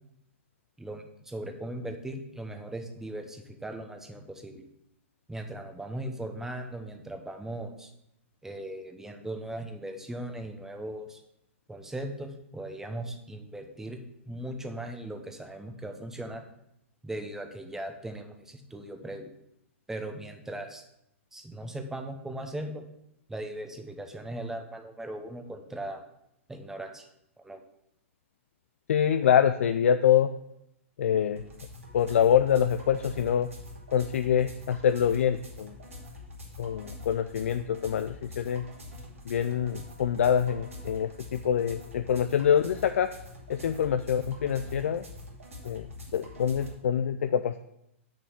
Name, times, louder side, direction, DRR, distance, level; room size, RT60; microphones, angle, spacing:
voice 1, 0.8-4.6 5.3-7.9 8.4-11.2 11.7-14.0 14.2-16.4 17.0-19.3 19.9-20.8 21.3-22.9 23.3-26.0 26.5-27.0 27.4-27.6, right 1 dB, 5° right, 5 dB, 1.1 m, -38 dB
voice 2, 28.9-30.3 31.0-31.4 31.9-33.5 33.9-35.7 36.6-38.6 39.3-43.1 43.5-45.0 45.6-45.9 46.1-47.6, left 8 dB, 70° left, 10 dB, 0.4 m, -25 dB
sound 1, 31.4-46.7, left 2 dB, 85° right, 2.5 m, -45 dB
6.4 x 6.1 x 6.0 m, 0.79 s
hypercardioid pair, 110°, 7 cm